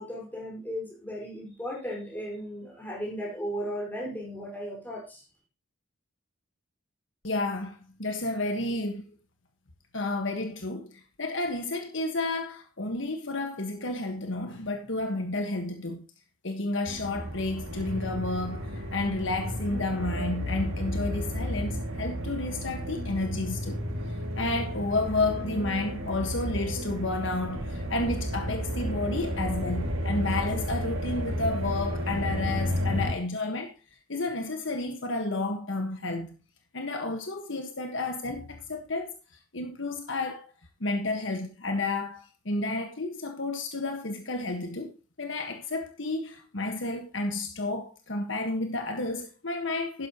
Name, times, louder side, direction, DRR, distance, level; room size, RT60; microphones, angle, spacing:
voice 1, 0.0-5.2, equal, 10° left, 5.0 m, -36 dB
voice 2, 7.2-9.1 9.9-10.9 11.2-16.0 16.4-23.8 24.3-33.7 34.1-36.4 36.7-39.1 39.5-40.4 40.8-44.9 45.2-50.1, left 2 dB, 60° left, 1.5 m, -31 dB
sound 1, 16.9-33.1, equal, 75° right, 2.7 m, -32 dB
12.0 x 10.5 x 3.0 m
head